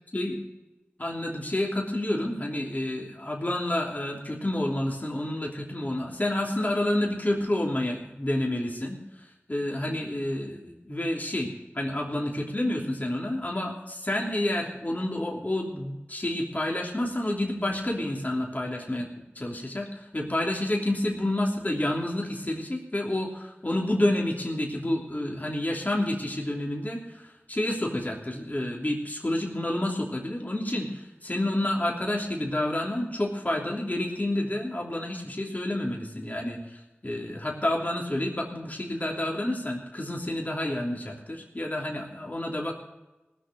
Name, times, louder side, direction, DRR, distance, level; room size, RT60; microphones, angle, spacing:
voice 1, 1.0-19.1 19.3-42.7, left 1 dB, 40° left, -1 dB, 3.1 m, -29 dB
18.5 x 6.9 x 7.6 m, 1.1 s
wide cardioid pair, 40°, 4 cm